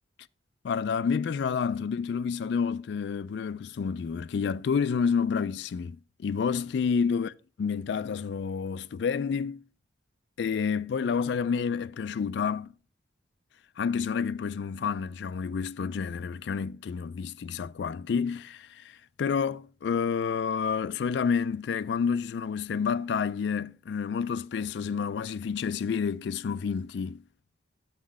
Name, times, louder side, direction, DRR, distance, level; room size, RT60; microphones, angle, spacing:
voice 1, 0.6-7.3 7.6-9.6 10.4-12.7 13.8-27.2, left 6 dB, 70° left, 0.3 m, -29 dB
6.3 x 5.8 x 4.7 m
head